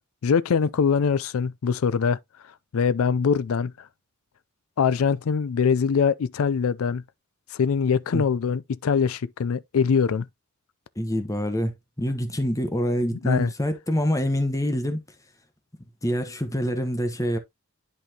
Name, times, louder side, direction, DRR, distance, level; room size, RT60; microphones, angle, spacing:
voice 1, 0.2-2.2 2.7-3.9 4.8-7.0 7.5-10.3 13.2-13.5, left 6 dB, 75° left, 0.4 m, -23 dB
voice 2, 11.0-15.0 16.0-17.4, equal, 15° left, 1.0 m, -26 dB
10.5 x 4.1 x 2.8 m
head